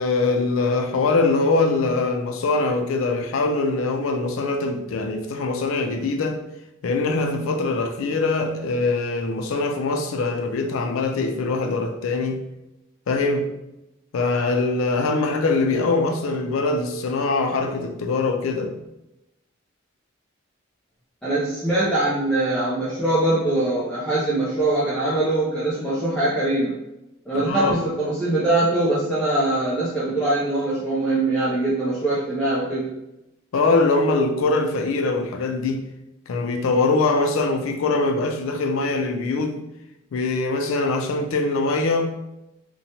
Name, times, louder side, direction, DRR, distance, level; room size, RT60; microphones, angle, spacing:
voice 1, 0.0-6.4 6.8-12.4 13.1-13.5 14.1-18.8 27.3-27.8 33.5-35.8 36.3-39.6 40.1-42.1, left 3 dB, 90° left, 0.4 m, -22 dB
voice 2, 21.2-26.7 27.3-32.9, right 2 dB, 5° left, 0.5 m, -22 dB
2.9 x 2.2 x 2.7 m
head